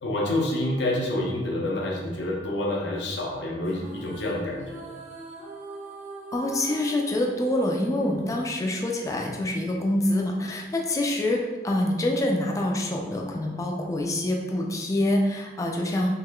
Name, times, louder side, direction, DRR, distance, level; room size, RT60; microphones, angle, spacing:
voice 1, 0.0-4.9, left 1 dB, 85° left, -2 dB, 0.7 m, -28 dB
sound 1, 3.6-9.1, right 2 dB, 45° right, 0.7 m, -42 dB
voice 2, 6.3-16.1, left 1 dB, 20° left, 0 dB, 0.3 m, -26 dB
3.5 x 3.1 x 2.2 m, 1.2 s
head